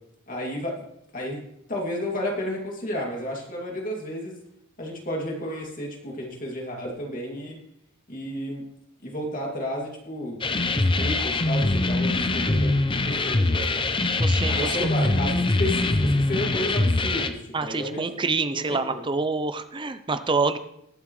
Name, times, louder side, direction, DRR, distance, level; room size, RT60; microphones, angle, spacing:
voice 1, 0.3-0.8 1.1-1.4 1.7-4.3 4.8-7.6 8.1-8.6 9.0-13.8 14.5-18.2 18.5-19.0, left 1 dB, 40° left, -1 dB, 2.6 m, -32 dB
sound 1, 10.4-17.3, left 2 dB, 25° left, 0.6 m, -23 dB
voice 2, 14.2-14.8 17.5-20.6, right 4 dB, 25° right, 11 dB, 0.6 m, -27 dB
20.5 x 7.4 x 3.2 m, 0.77 s
head